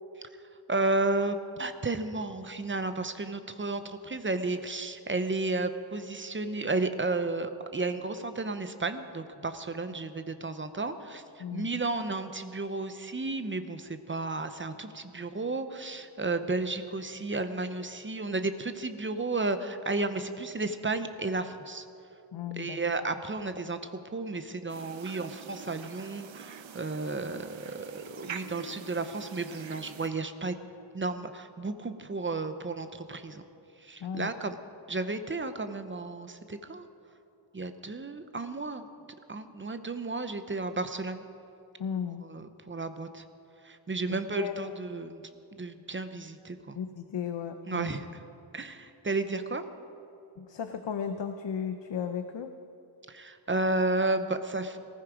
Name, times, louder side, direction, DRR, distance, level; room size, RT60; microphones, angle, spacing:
voice 1, 0.7-21.9 22.5-30.5 30.9-33.4 33.8-34.6 34.9-36.9 37.5-38.9 39.3-41.2 42.2-43.2 43.6-45.2 45.5-46.8 47.7-48.2 48.5-49.7 53.1-54.8, right 3 dB, 25° right, 9 dB, 0.7 m, -33 dB
voice 2, 11.4-11.8 22.3-22.8 34.0-34.3 41.8-42.2 44.1-44.7 46.8-47.9 50.4-52.5, left 7 dB, 65° left, 8 dB, 0.8 m, -35 dB
sound 1, 24.7-30.1, right 7 dB, 75° right, 0.8 m, -45 dB
18.5 x 15.0 x 5.0 m, 2.8 s
wide cardioid pair, 175°, 46 cm